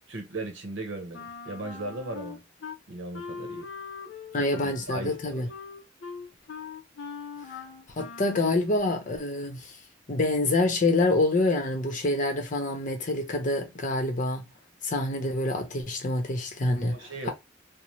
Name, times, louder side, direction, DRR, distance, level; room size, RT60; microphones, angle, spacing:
voice 1, 0.1-2.4 2.9-3.7 4.4-5.5 16.8-17.3, right 2 dB, 75° right, 0.7 m, -37 dB
Wind instrument woodwind instrument, 1.1-2.8 3.1-8.5, left 5 dB, 80° left, 0.5 m, -41 dB
voice 2, 4.3-5.5 8.0-9.7 10.1-14.4 14.8-16.9, left 2 dB, 45° left, 0.7 m, -26 dB
2.6 x 2.0 x 3.0 m
head